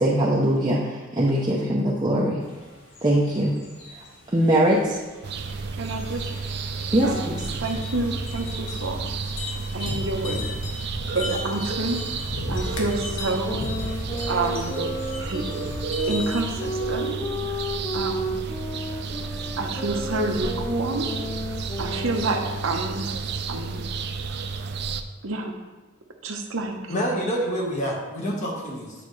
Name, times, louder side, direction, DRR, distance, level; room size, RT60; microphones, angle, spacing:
voice 1, 0.0-2.4 3.0-3.5 4.3-5.0 6.9-7.4, right 1 dB, 20° right, -5 dB, 0.7 m, -21 dB
sound 1, 2.4-16.7, left 1 dB, 70° left, 1.3 m, -36 dB
sound 2, 5.2-25.0, right 4 dB, 55° right, 0.4 m, -32 dB
voice 2, 5.7-6.2 7.0-9.1 9.7-10.4 11.1-13.6 14.3-14.8 15.2-15.4 16.1-17.2 17.5-17.6 17.9-18.4 19.6-21.1 21.8-23.1 23.5-23.8 25.2-25.5 26.2-26.8, right 2 dB, 75° right, 3 dB, 0.9 m, -28 dB
sound 3, 12.8-22.8, equal, 15° left, 0.3 m, -33 dB
voice 3, 26.9-28.9, equal, 35° left, -2 dB, 1.4 m, -27 dB
9.4 x 4.9 x 3.2 m, 1.3 s
head